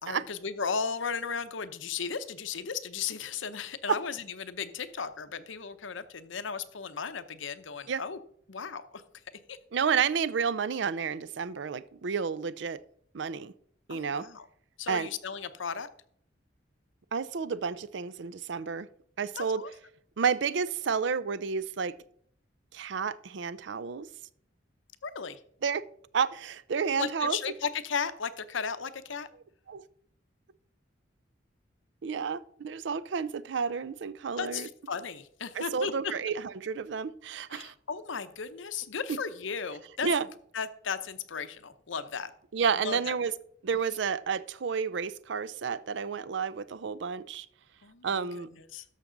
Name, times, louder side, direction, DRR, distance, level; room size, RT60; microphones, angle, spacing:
voice 1, 0.0-8.2 8.5-9.0 9.5-9.6 13.9-14.5 14.8-15.9 19.3-19.7 25.0-25.4 26.9-29.3 34.4-35.9 37.5-40.3 40.5-42.3 42.8-43.2 47.8-48.8, left 6 dB, 75° left, 12 dB, 0.7 m, -35 dB
voice 2, 9.7-12.8 13.1-13.5 13.9-14.3 14.9-15.1 17.1-18.9 19.2-19.6 20.2-21.9 22.7-24.1 25.6-25.8 26.1-27.4 29.7-29.8 32.0-34.7 35.6-37.7 40.0-40.3 42.5-43.3 43.6-47.5 48.0-48.5, right 6 dB, 65° right, 17 dB, 0.5 m, -30 dB
13.0 x 5.9 x 3.8 m, 0.65 s
head